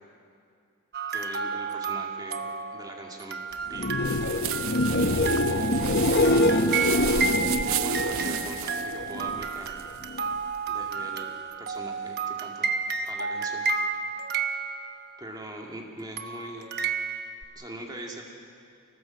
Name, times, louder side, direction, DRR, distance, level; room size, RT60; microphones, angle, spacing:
sound 1, 0.9-15.3 16.2-17.3, right 4 dB, 45° right, 1.2 m, -32 dB
voice 1, 1.1-3.4 3.7-3.9 5.4-5.8 6.8-9.8 10.7-12.7 13.1-13.7 15.2-16.7 17.6-18.2, right 1 dB, 20° right, 0 dB, 2.3 m, -41 dB
sound 2, 3.7-9.4 9.8-10.4 17.4-17.5, left 1 dB, 50° left, 0.8 m, -25 dB
sound 3, 4.0-10.9, right 12 dB, 70° right, 0.6 m, -34 dB
27.0 x 19.0 x 7.7 m, 2.4 s
head